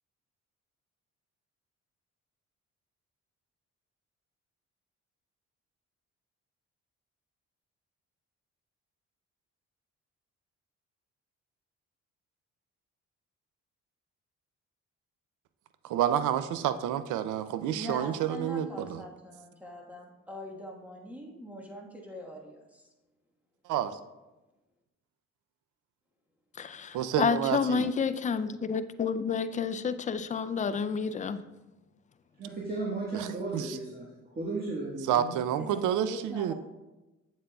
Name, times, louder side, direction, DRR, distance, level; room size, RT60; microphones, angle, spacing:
voice 1, 15.8-19.0 23.7-23.9 26.9-27.9 33.1-33.8 35.1-36.5, right 10 dB, 80° right, 12 dB, 0.5 m, -29 dB
voice 2, 17.7-22.8 35.6-36.5, equal, 5° right, -1 dB, 1.4 m, -42 dB
voice 3, 26.6-31.4, left 6 dB, 25° left, 11 dB, 0.4 m, -30 dB
voice 4, 32.4-34.0 34.3-35.3, right 3 dB, 30° right, -4 dB, 1.5 m, -35 dB
8.1 x 7.4 x 2.3 m, 1.1 s
cardioid pair, 90°, 30 cm